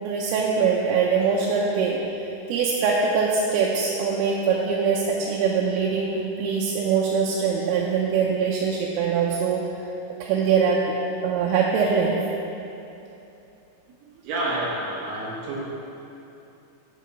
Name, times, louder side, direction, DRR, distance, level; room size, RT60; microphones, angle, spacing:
voice 1, 0.0-2.0 2.5-9.6 10.2-11.0 11.2-12.1, right 5 dB, 85° right, -3 dB, 3.3 m, -23 dB
voice 2, 14.2-15.6, right 1 dB, 65° right, -5 dB, 2.9 m, -28 dB
8.1 x 6.0 x 5.9 m, 2.8 s
omnidirectional pair, 5.7 m